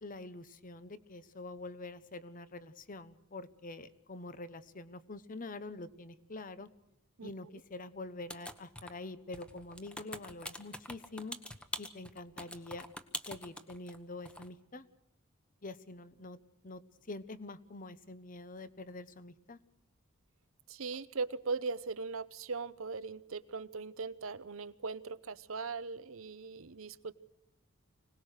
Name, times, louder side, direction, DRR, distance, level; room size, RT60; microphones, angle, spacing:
voice 1, 0.0-6.7 7.2-11.4 11.8-12.8 13.3-14.9 15.6-16.4 16.6-16.8 17.1-19.6, left 2 dB, 40° left, 14 dB, 1.0 m, -46 dB
Computer Typing, 8.3-9.0 9.3-14.0 14.2-14.5, left 1 dB, 5° left, 1.2 m, -43 dB
voice 2, 20.7-27.1, right 4 dB, 80° right, 16 dB, 0.8 m, -39 dB
25.0 x 19.0 x 6.5 m, 0.80 s
head